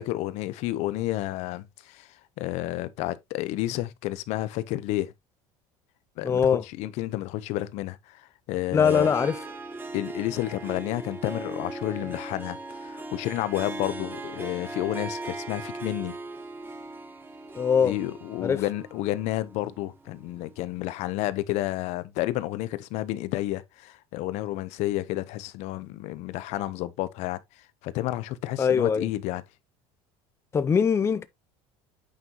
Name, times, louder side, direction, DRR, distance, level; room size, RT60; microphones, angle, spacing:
voice 1, 0.0-5.1 6.2-6.4 6.8-9.1 9.9-16.2 17.8-29.4, left 16 dB, 65° left, 0.8 m, -31 dB
voice 2, 6.2-6.6 8.7-9.4 17.5-18.0 18.4-18.6 28.6-29.1 30.5-31.2, left 7 dB, 20° left, 0.5 m, -22 dB
Harp, 8.7-20.6, right 2 dB, 15° right, 1.7 m, -38 dB
8.8 x 5.5 x 2.9 m
supercardioid pair, 115°, 12 cm